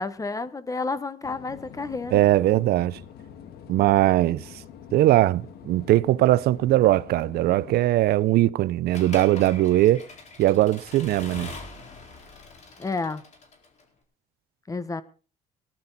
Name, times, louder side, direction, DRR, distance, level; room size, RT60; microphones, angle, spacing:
voice 1, 0.0-2.2 12.8-13.2 14.7-15.0, left 3 dB, 20° left, 1.2 m, -30 dB
sound 1, 1.2-7.8, left 8 dB, 70° left, 1.8 m, -45 dB
voice 2, 2.1-3.0 3.7-4.4 4.9-10.0 10.4-11.5, right 15 dB, 70° right, 0.6 m, -20 dB
Accelerating revving vroom / Mechanisms, 8.9-13.8, left 4 dB, 45° left, 4.4 m, -42 dB
19.0 x 11.5 x 4.0 m
cardioid pair, 110°, 17 cm